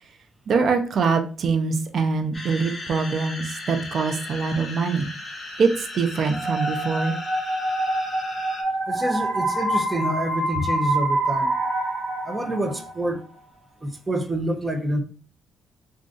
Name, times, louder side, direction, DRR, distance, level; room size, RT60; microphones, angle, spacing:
voice 1, 0.5-5.1 5.6-7.2, right 4 dB, 55° right, 0.6 m, -23 dB
sound 1, 2.3-8.6, left 2 dB, 30° left, 0.9 m, -37 dB
sound 2, 6.3-13.1, right 1 dB, 5° right, 1.2 m, -26 dB
voice 2, 8.9-11.5 12.2-13.2 13.8-15.0, right 1 dB, 20° right, 0.6 m, -27 dB
2.5 x 2.4 x 3.7 m
cardioid pair, 90°, 0 cm